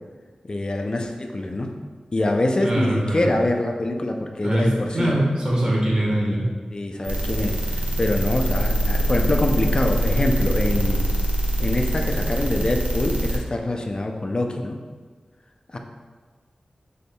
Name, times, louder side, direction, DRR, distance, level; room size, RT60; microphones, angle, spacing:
voice 1, 0.4-1.7 2.1-5.2 6.7-11.0 11.6-14.8 15.7-15.8, left 1 dB, 40° left, 3 dB, 0.5 m, -25 dB
voice 2, 2.6-3.3 4.4-6.5, right 1 dB, 35° right, -4 dB, 1.3 m, -22 dB
sound 1, 7.0-13.4, equal, 65° right, 0.9 m, -23 dB
6.3 x 3.5 x 2.3 m, 1.4 s
wide cardioid pair, 85°, 2 cm